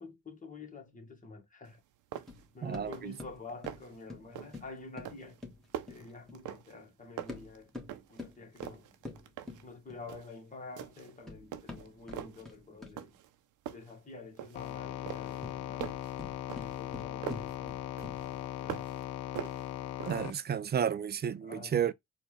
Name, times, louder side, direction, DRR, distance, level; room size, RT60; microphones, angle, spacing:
voice 1, 0.0-1.8 2.5-5.4 5.9-7.7 8.1-8.9 9.6-13.1 13.7-16.0 16.6-19.0 21.4-21.9, left 3 dB, 25° left, 1.5 m, -48 dB
sound 1, 1.7-1.8 2.1-2.5 2.8-3.2 3.5-4.0 4.4-4.7 5.0-6.9 7.2-8.2 8.6-9.7 10.1-10.4 10.8-11.2 11.5-12.5 13.0-13.4 13.7-14.7 15.1-17.6 18.0-19.0 19.4-20.4, right 11 dB, 85° right, 0.7 m, -43 dB
sound 2, 2.3-6.5 7.2-10.2 11.0-13.2 15.2-18.5, left 2 dB, ahead, 1.4 m, -47 dB
voice 2, 2.6-3.1 20.1-21.9, right 8 dB, 35° right, 0.4 m, -32 dB
sound 3, 14.5-20.3, left 12 dB, 85° left, 0.5 m, -39 dB
4.2 x 2.5 x 3.2 m
cardioid pair, 90°, 30 cm